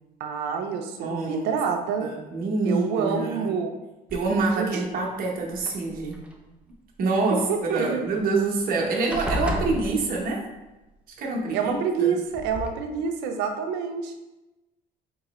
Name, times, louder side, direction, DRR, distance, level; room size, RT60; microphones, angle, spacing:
voice 1, 0.2-2.1 2.6-3.8 4.6-4.7 7.5-8.0 8.7-8.9 11.5-14.1, right 6 dB, 85° right, 5 dB, 0.5 m, -27 dB
voice 2, 1.0-1.5 2.0-3.5 4.1-6.2 7.0-10.4 11.2-12.2, right 3 dB, 60° right, -1 dB, 0.9 m, -26 dB
sound 1, 4.1-4.7 5.5-6.4 8.2-8.3 8.5-8.8 9.1-10.5 11.7-11.8 12.3-12.7, equal, 5° right, 0.5 m, -32 dB
3.8 x 3.0 x 3.0 m, 1.0 s
cardioid pair, 110°, 17 cm